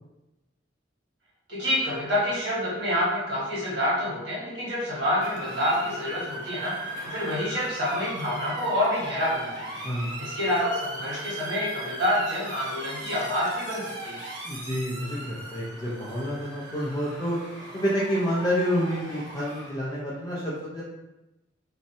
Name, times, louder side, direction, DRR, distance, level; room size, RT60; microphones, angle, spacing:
voice 1, 1.5-6.7 7.0-14.2, left 1 dB, 70° right, -8 dB, 1.4 m, -27 dB
Motor vehicle (road) / Siren, 5.2-19.7, right 1 dB, 85° right, 0.6 m, -38 dB
voice 2, 9.8-10.3 14.4-17.4 17.7-20.8, equal, 20° left, -6 dB, 0.4 m, -28 dB
2.6 x 2.1 x 2.6 m, 0.97 s
head